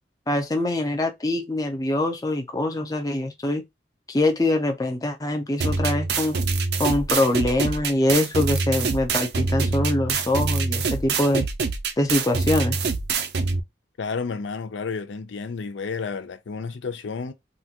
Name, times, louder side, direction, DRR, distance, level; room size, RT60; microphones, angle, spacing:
voice 1, 0.3-3.6 4.1-6.4 6.8-11.5 12.0-12.9, left 1 dB, 20° left, 0.5 m, -24 dB
sound 1, 5.6-13.6, right 4 dB, 60° right, 0.5 m, -25 dB
voice 2, 14.0-17.3, left 5 dB, 85° left, 0.5 m, -31 dB
3.8 x 2.3 x 2.8 m
head